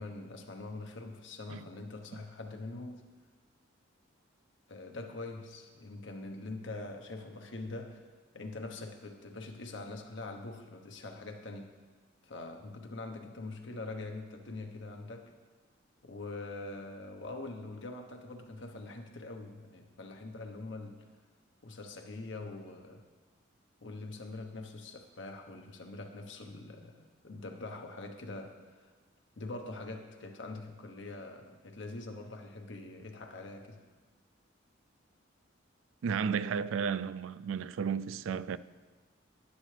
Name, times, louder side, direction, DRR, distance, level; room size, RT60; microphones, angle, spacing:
voice 1, 0.0-3.1 4.7-8.1 8.3-11.7 12.2-15.3 16.0-21.1 21.6-23.0 23.8-28.9 29.4-33.8, left 2 dB, 70° left, 1.0 m, -44 dB
voice 2, 36.0-38.6, right 6 dB, 85° right, 0.3 m, -33 dB
11.5 x 10.0 x 3.3 m
head